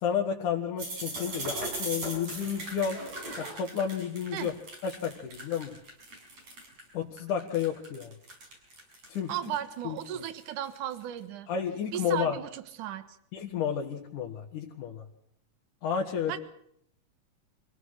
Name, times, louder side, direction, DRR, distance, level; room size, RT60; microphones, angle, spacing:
voice 1, 0.0-3.0 3.4-4.5 4.8-5.8 6.9-8.1 9.1-9.3 9.8-10.0 11.5-12.4 13.3-15.0 15.8-16.4, left 8 dB, 70° left, -1 dB, 3.3 m, -31 dB
sound 1, 0.8-6.8 7.2-11.0, right 2 dB, 55° right, 7.9 m, -39 dB
voice 2, 9.3-11.5 11.9-13.1 16.2-16.4, right 11 dB, 75° right, 12 dB, 2.8 m, -35 dB
25.0 x 17.0 x 6.5 m, 0.68 s
omnidirectional pair, 3.7 m